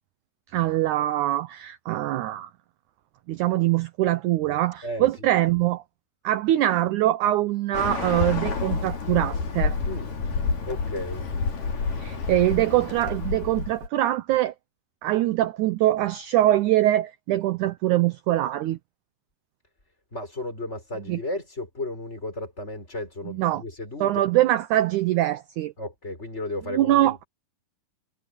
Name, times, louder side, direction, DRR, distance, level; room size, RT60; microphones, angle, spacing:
voice 1, 0.5-2.5 3.3-5.8 6.2-9.8 12.0-14.5 15.0-18.8 21.1-21.2 23.3-23.6 24.0-25.7 26.7-27.2, right 14 dB, 80° right, 1.7 m, -23 dB
voice 2, 4.8-5.3 9.8-10.1 10.6-11.3 20.1-24.2 25.8-27.2, left 1 dB, 15° left, 6.1 m, -34 dB
Bird, 7.7-13.9, left 4 dB, 60° left, 5.5 m, -29 dB
omnidirectional pair, 4.3 m